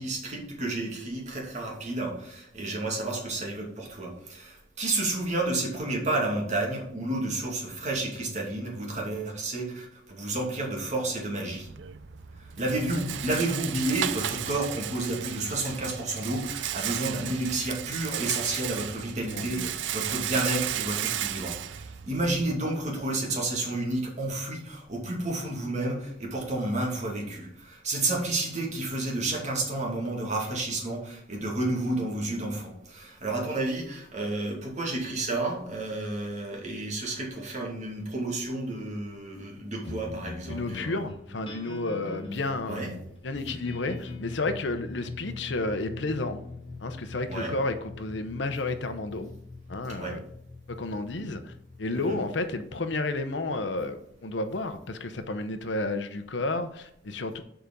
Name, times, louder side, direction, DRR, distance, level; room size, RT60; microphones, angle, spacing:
voice 1, 0.0-11.7 12.3-41.0 42.7-42.9 47.3-47.5 49.9-50.2 51.9-52.2, right 2 dB, 40° right, -1 dB, 2.4 m, -31 dB
Rattle, 11.5-22.5, right 11 dB, 75° right, 0.5 m, -34 dB
voice 2, 19.3-19.7 40.5-42.8 43.2-46.4 46.8-49.3 49.7-50.2 50.7-51.5 51.8-57.4, left 2 dB, 70° left, 9 dB, 0.8 m, -31 dB
sound 1, 39.8-54.5, left 3 dB, 30° left, 2.2 m, -43 dB
7.1 x 5.0 x 5.2 m, 0.75 s
head